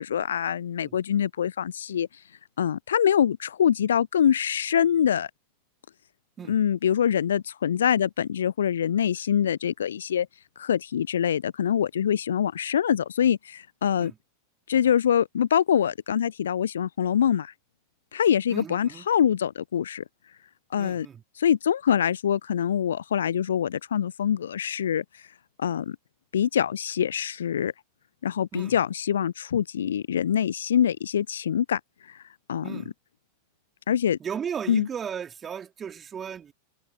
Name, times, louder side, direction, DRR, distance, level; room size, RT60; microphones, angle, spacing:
voice 1, 0.0-2.1 2.6-5.3 6.5-10.3 10.6-14.1 14.7-17.5 18.1-20.0 20.7-21.1 21.4-25.0 25.6-26.0 26.3-27.7 28.2-31.8 32.1-32.2 32.5-32.8 33.9-34.2 34.7-34.9, left 9 dB, 65° left, 0.8 m, -24 dB
voice 2, 18.5-19.1 20.8-21.2 28.5-28.8 32.6-32.9 34.2-36.5, right 7 dB, 20° right, 3.8 m, -36 dB
figure-of-eight pair, 90°, 0 cm